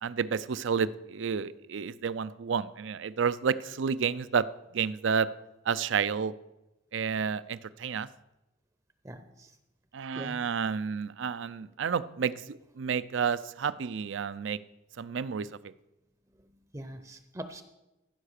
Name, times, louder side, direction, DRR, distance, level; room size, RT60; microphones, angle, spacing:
voice 1, 0.0-4.5 4.7-5.3 5.7-6.3 6.9-8.1 9.9-14.6 15.0-15.5, right 6 dB, 75° right, 16 dB, 0.4 m, -30 dB
voice 2, 9.0-9.5 10.1-10.4 16.7-17.6, right 1 dB, 15° right, 9 dB, 0.6 m, -42 dB
15.0 x 5.7 x 6.5 m, 0.98 s
head